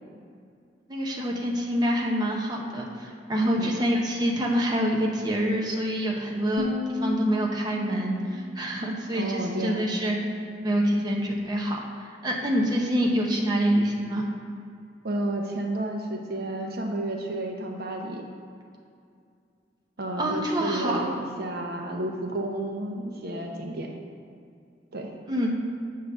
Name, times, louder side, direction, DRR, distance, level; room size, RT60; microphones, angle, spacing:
voice 1, 0.9-10.2 10.6-14.3 20.2-21.1 25.3-25.5, equal, 25° right, -2 dB, 0.8 m, -26 dB
voice 2, 3.4-3.8 9.1-9.9 15.0-18.2 20.0-23.9 24.9-25.1, right 1 dB, 60° right, 2 dB, 0.8 m, -31 dB
sound 1, 6.6-9.6, left 1 dB, 85° right, 1.1 m, -34 dB
8.2 x 3.8 x 6.6 m, 2.4 s
head